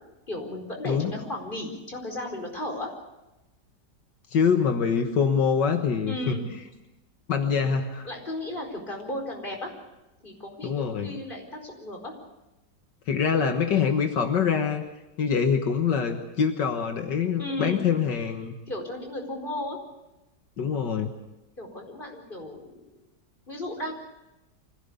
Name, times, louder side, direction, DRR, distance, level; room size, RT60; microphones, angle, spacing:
voice 1, 0.3-2.9 6.0-6.5 7.4-7.6 8.0-9.7 10.2-12.1 17.4-17.9 18.7-19.8 21.6-22.9 23.5-23.9, left 1 dB, 30° left, 2 dB, 4.9 m, -35 dB
voice 2, 4.3-6.4 7.3-8.1 10.6-11.2 13.1-14.8 15.2-18.6 20.6-21.1, left 6 dB, 80° left, 5 dB, 2.1 m, -24 dB
25.0 x 17.0 x 8.4 m, 0.98 s
omnidirectional pair, 1.9 m